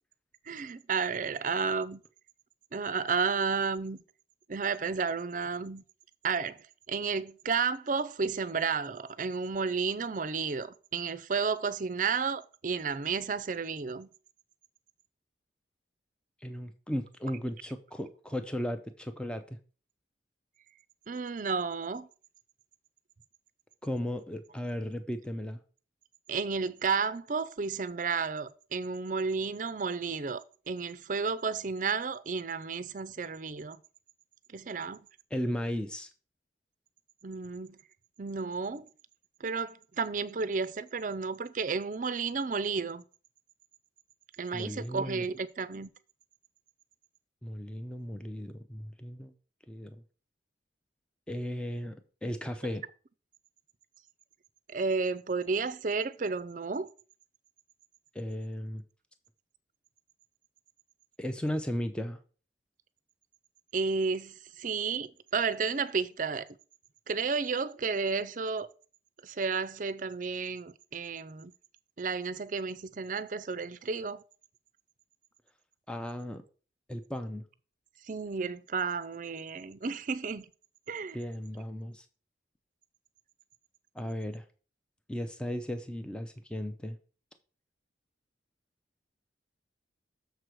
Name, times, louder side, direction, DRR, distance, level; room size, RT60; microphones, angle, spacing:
voice 1, 0.5-2.0 2.7-4.0 4.5-5.8 6.2-14.1 21.1-22.1 26.3-33.8 34.5-35.0 37.2-37.8 38.2-38.9 39.4-43.0 44.4-45.9 54.7-56.9 63.7-66.6 67.1-68.7 69.2-71.5 72.0-74.2 78.1-80.5 80.9-81.2, right 5 dB, 45° right, 0.5 m, -32 dB
voice 2, 16.4-19.6 23.8-25.6 35.3-36.1 44.5-45.3 47.4-49.3 49.7-50.0 51.3-52.9 58.1-58.8 61.2-62.2 75.9-76.4 76.9-77.5 81.1-82.0 83.9-84.5 85.1-87.0, equal, 5° left, 0.5 m, -36 dB
6.8 x 4.6 x 6.3 m
head